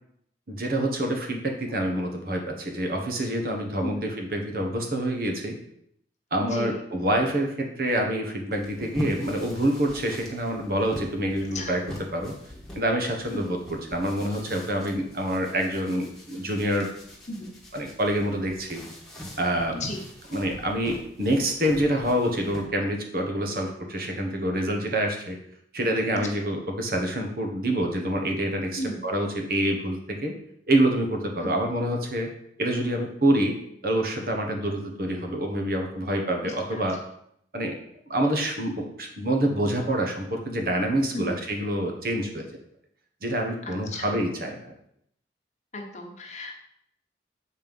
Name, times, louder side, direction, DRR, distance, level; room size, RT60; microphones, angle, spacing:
voice 1, 0.5-5.6 6.3-11.8 12.1-12.3 12.7-16.9 17.7-18.8 19.4-19.8 20.3-25.4 25.7-30.3 30.7-32.3 32.6-33.6 33.8-37.0 37.5-37.7 38.1-42.5 43.2-44.7, right 1 dB, 50° right, 2 dB, 1.3 m, -26 dB
voice 2, 6.4-6.8 11.5-11.7 13.3-13.4 17.4-17.6 19.7-20.0 23.5-23.6 28.8-29.0 31.4-31.5 36.4-36.8 41.1-41.3 43.7-44.2 45.7-46.5, left 1 dB, 40° left, 2 dB, 1.2 m, -34 dB
sound 1, 8.5-22.6, equal, 5° left, 1.5 m, -42 dB
7.6 x 4.5 x 5.3 m, 0.71 s
head